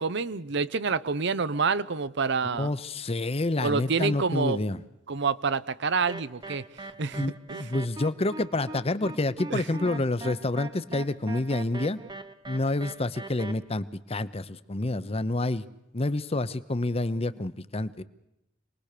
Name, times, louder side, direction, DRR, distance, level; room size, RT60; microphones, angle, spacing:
voice 1, 0.0-2.7 3.6-4.6 5.1-7.2 7.5-7.7 9.5-9.6, right 4 dB, 65° right, 16 dB, 0.8 m, -28 dB
voice 2, 2.4-4.8 7.1-12.0 12.5-15.6 15.9-18.0, left 2 dB, 30° left, 14 dB, 0.8 m, -28 dB
sound 1, 6.1-13.5, right 2 dB, 20° right, 1.0 m, -40 dB
27.5 x 20.5 x 6.7 m, 0.88 s
head